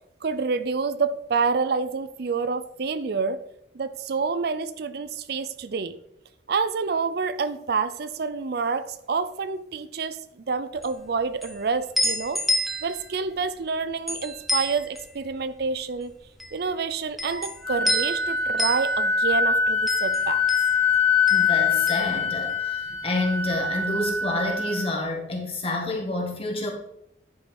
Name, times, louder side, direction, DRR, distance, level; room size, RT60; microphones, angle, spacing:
voice 1, 0.2-3.4 3.7-6.0 6.5-12.4 12.8-16.1 16.5-20.4, right 4 dB, 60° right, 12 dB, 0.5 m, -28 dB
sound 1, 10.7-23.0 23.3-24.3, equal, ahead, 0.9 m, -31 dB
Wind instrument woodwind instrument, 17.3-25.0, left 5 dB, 15° left, 1.9 m, -24 dB
voice 2, 21.3-26.7, left 2 dB, 30° left, 0 dB, 1.8 m, -28 dB
10.0 x 5.7 x 4.3 m, 0.79 s
head